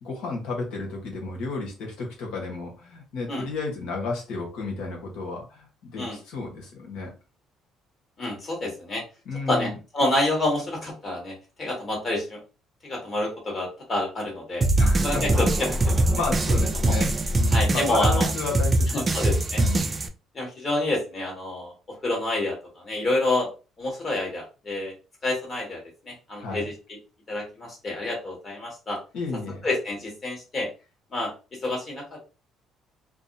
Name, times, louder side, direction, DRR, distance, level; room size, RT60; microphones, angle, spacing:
voice 1, 0.0-7.1 9.2-9.8 14.8-15.4 16.0-19.0 19.6-19.9 26.4-26.7 29.1-29.7, left 3 dB, 85° left, 0 dB, 1.0 m, -32 dB
voice 2, 8.2-9.0 9.5-12.4 12.8-14.6 15.0-16.0 16.9-17.0 17.5-18.3 18.9-19.6 20.3-21.7 22.0-23.5 23.8-24.9 25.2-26.7 27.3-29.0 29.6-30.7 31.1-31.3 31.6-32.2, left 2 dB, 35° left, -1 dB, 1.3 m, -28 dB
sound 1, 14.6-20.1, right 2 dB, 25° right, 0.3 m, -22 dB
2.6 x 2.0 x 2.6 m, 0.32 s
cardioid pair, 105°, 0 cm